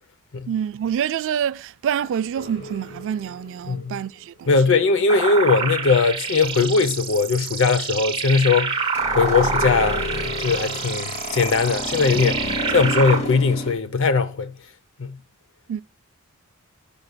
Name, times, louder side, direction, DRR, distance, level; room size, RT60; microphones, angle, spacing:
voice 1, 0.5-4.5 15.7-15.8, right 8 dB, 60° right, 0.3 m, -27 dB
sound 1, 2.3-3.9 9.0-13.7, left 1 dB, 30° left, 1.1 m, -31 dB
voice 2, 3.7-4.0 4.5-8.8 9.1-12.5 12.7-14.5 15.0-15.1, left 4 dB, 65° left, 0.6 m, -20 dB
sound 2, 5.1-13.2, right 5 dB, 25° right, 0.8 m, -27 dB
9.7 x 5.2 x 2.2 m
head